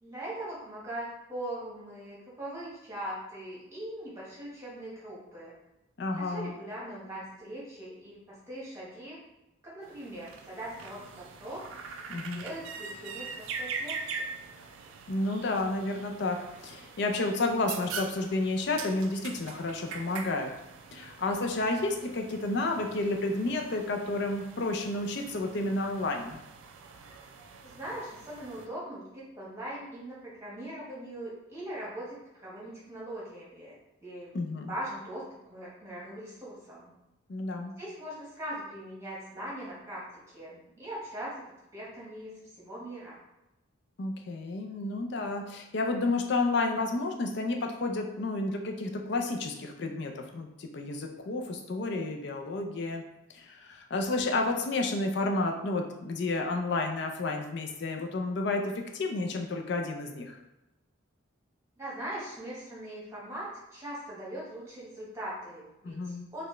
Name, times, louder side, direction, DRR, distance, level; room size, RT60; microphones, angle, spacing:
voice 1, 0.0-5.5 6.1-9.2 9.6-11.7 12.1-14.3 27.6-33.8 34.0-34.4 34.6-36.9 37.8-41.5 41.7-43.2 61.8-66.5, right 1 dB, 15° right, -6 dB, 1.0 m, -41 dB
voice 2, 6.0-6.5 12.1-12.4 15.1-16.4 16.6-20.5 20.9-26.4 34.3-34.7 37.3-37.7 44.0-53.0 53.3-58.6 58.9-60.4 65.8-66.3, left 2 dB, 55° left, 3 dB, 0.4 m, -31 dB
sound 1, 9.8-28.7, right 5 dB, 80° right, 0.3 m, -43 dB
4.0 x 2.2 x 3.1 m, 0.94 s
head